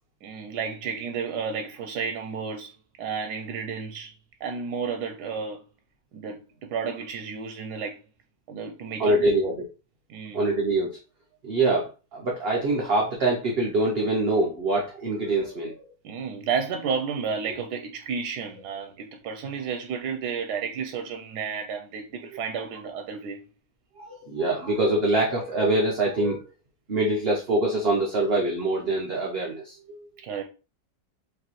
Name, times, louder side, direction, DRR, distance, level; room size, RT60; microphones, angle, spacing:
voice 1, 0.2-2.7 3.0-4.1 4.4-5.6 6.1-8.0 8.5-9.3 10.1-10.4 16.0-23.4 30.2-30.4, right 6 dB, 85° right, 1.2 m, -32 dB
voice 2, 9.0-9.7 10.3-11.0 11.4-15.8 24.0-26.4 26.9-30.1, right 2 dB, 50° right, 0.8 m, -24 dB
4.8 x 2.8 x 3.1 m
omnidirectional pair, 1.7 m